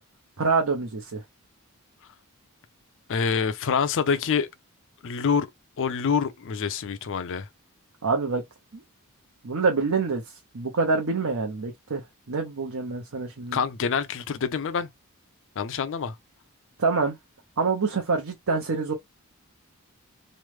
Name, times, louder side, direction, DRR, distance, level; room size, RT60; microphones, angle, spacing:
voice 1, 0.4-1.2 8.0-8.4 8.7-8.8 9.4-10.2 10.5-13.6 16.8-17.2 17.6-18.9, right 4 dB, 65° right, 0.7 m, -26 dB
voice 2, 3.1-4.5 5.0-5.5 5.8-7.5 13.5-14.9 15.6-16.2, left 6 dB, 60° left, 0.5 m, -26 dB
3.2 x 2.0 x 3.1 m
head